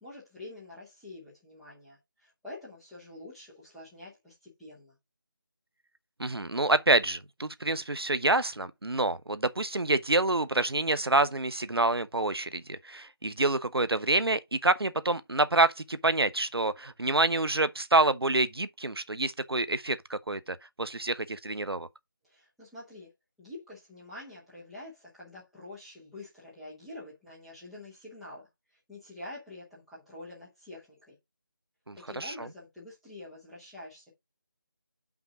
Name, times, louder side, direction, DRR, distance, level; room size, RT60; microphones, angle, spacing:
voice 1, 0.0-5.0 22.2-23.1 23.4-31.2 31.9-34.1, left 2 dB, ahead, 0.5 m, -47 dB
voice 2, 6.2-21.9 31.9-32.3, right 2 dB, 85° right, 0.9 m, -27 dB
5.9 x 5.3 x 4.8 m
figure-of-eight pair, 165°, 12 cm